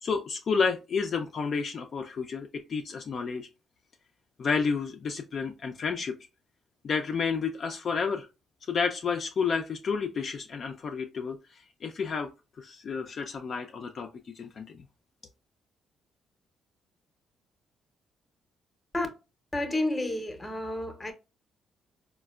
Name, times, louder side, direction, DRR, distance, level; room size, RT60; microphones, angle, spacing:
voice 1, 0.0-3.5 4.4-6.2 6.8-8.3 8.7-12.3 12.6-14.9, left 5 dB, 50° left, 0.3 m, -31 dB
voice 2, 19.5-21.1, left 1 dB, 15° left, 0.7 m, -30 dB
4.0 x 2.1 x 2.2 m
cardioid pair, 90°, 0 cm